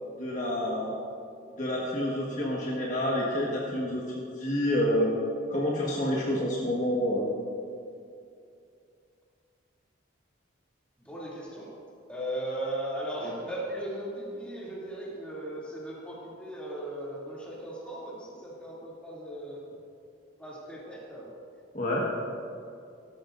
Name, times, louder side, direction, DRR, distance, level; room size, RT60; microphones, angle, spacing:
voice 1, 0.2-1.0 1.6-5.1 5.5-7.2 21.7-22.0, left 1 dB, 40° left, -5 dB, 1.6 m, -28 dB
voice 2, 11.0-11.7 12.1-19.6 20.4-21.3, right 1 dB, 5° left, -7 dB, 2.7 m, -37 dB
17.0 x 13.0 x 2.6 m, 2.4 s
head